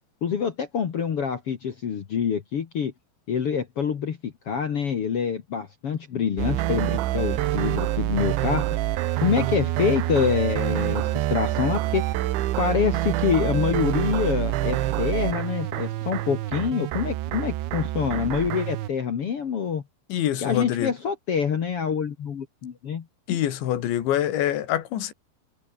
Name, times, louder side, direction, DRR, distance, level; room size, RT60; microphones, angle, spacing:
voice 1, 0.2-2.9 3.3-8.8 9.2-12.1 12.6-19.8 20.4-23.0, left 7 dB, 60° left, 1.5 m, -26 dB
sound 1, 6.4-18.9, right 15 dB, 90° right, 3.7 m, -26 dB
voice 2, 20.1-20.9 23.3-25.1, left 11 dB, 80° left, 4.5 m, -25 dB
omnidirectional pair, 5.2 m